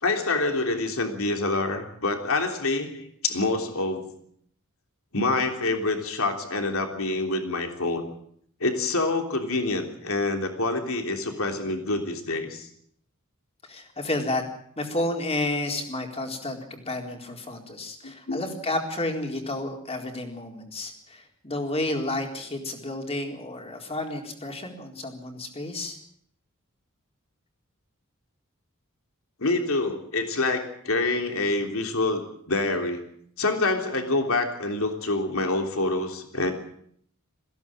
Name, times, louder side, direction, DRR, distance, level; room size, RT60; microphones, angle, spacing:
voice 1, 0.0-4.1 5.1-8.0 8.6-12.7 18.0-18.4 29.4-33.0 33.4-36.5, left 2 dB, 70° left, 4 dB, 3.4 m, -26 dB
voice 2, 13.7-14.4 14.8-26.0, left 2 dB, 30° left, 3 dB, 4.1 m, -31 dB
21.5 x 16.0 x 8.9 m, 0.65 s
head